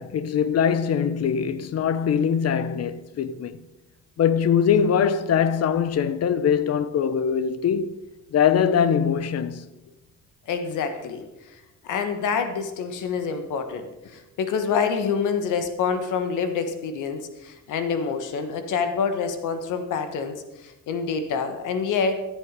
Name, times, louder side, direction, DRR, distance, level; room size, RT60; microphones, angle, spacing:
voice 1, 0.0-3.6 4.2-8.0 8.3-9.6, left 7 dB, 55° left, 0.8 m, -22 dB
voice 2, 10.5-22.2, left 6 dB, 85° left, 1.5 m, -27 dB
13.5 x 8.2 x 5.3 m
cardioid pair, 90°, 30 cm